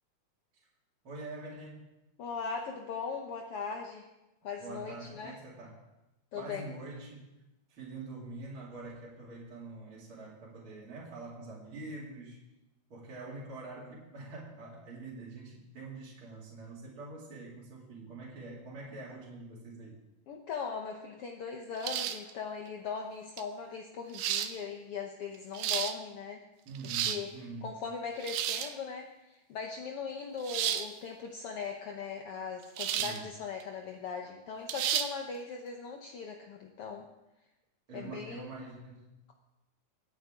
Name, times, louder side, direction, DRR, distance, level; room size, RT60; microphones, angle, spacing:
voice 1, 1.0-1.9 4.6-5.8 6.3-7.3 7.7-12.4 12.9-20.0 26.6-27.7 33.0-33.3 37.9-39.1, right 2 dB, 40° right, -6 dB, 3.3 m, -45 dB
voice 2, 2.2-4.1 4.4-5.3 6.3-6.6 20.3-26.4 26.8-37.1 37.9-38.6, left 5 dB, 75° left, 2 dB, 1.3 m, -39 dB
sound 1, 21.8-22.3 23.4-23.5 24.1-24.5 25.3-25.9 26.7-27.2 28.2-28.7 30.4-30.9 32.8-33.2 33.6-33.7 34.7-35.1, right 10 dB, 80° right, 2.3 m, -32 dB
25.0 x 9.5 x 3.8 m, 0.95 s
omnidirectional pair, 3.9 m